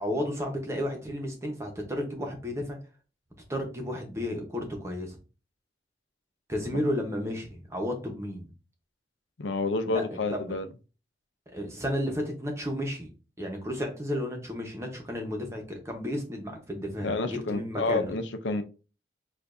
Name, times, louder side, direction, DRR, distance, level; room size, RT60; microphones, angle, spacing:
voice 1, 0.0-2.8 3.5-5.2 6.5-8.5 9.9-10.0 10.3-10.5 11.5-13.1 13.4-18.1, left 1 dB, 15° right, 1.0 m, -32 dB
voice 2, 9.4-10.7 17.0-18.6, left 3 dB, 85° left, 0.5 m, -29 dB
6.8 x 2.6 x 2.6 m
head